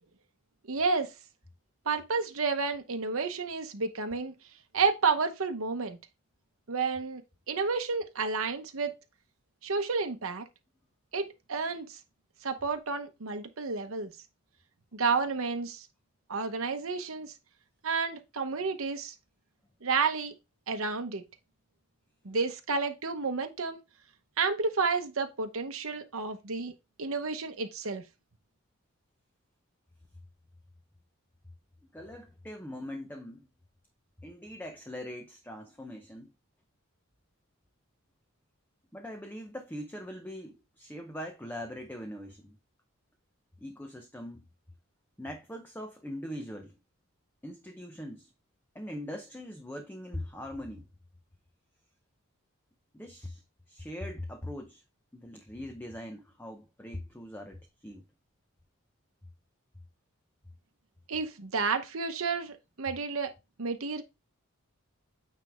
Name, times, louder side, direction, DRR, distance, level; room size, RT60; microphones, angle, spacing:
voice 1, 0.7-1.1 1.9-4.3 4.7-6.0 6.7-7.2 7.5-9.0 9.6-10.5 11.1-12.0 12.4-14.1 14.9-15.9 16.3-17.3 17.8-19.1 19.8-20.3 20.7-21.2 22.2-23.8 24.4-26.7 27.0-28.0 61.1-63.3 63.6-64.0, right 4 dB, 70° right, 0.9 m, -31 dB
voice 2, 31.9-33.5 34.2-36.3 38.9-42.6 43.6-44.4 45.2-46.7 47.4-48.3 48.7-50.9 52.9-53.4 53.7-54.8 55.1-58.0, left 1 dB, 10° left, 0.6 m, -41 dB
9.2 x 3.4 x 3.5 m
head